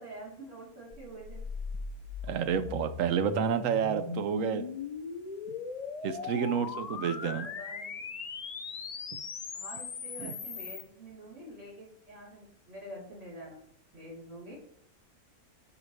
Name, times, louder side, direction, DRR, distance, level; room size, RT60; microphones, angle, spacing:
voice 1, 0.0-1.4 6.2-7.9 9.5-13.6 13.9-14.6, right 1 dB, 50° right, -7 dB, 3.9 m, -47 dB
sound 1, 0.9-10.8, left 5 dB, 75° left, 0.3 m, -39 dB
voice 2, 2.2-4.7 6.0-7.5 9.1-9.2 10.2-10.3, right 8 dB, 70° right, 11 dB, 0.9 m, -30 dB
9.8 x 4.9 x 3.2 m, 0.69 s
omnidirectional pair, 1.6 m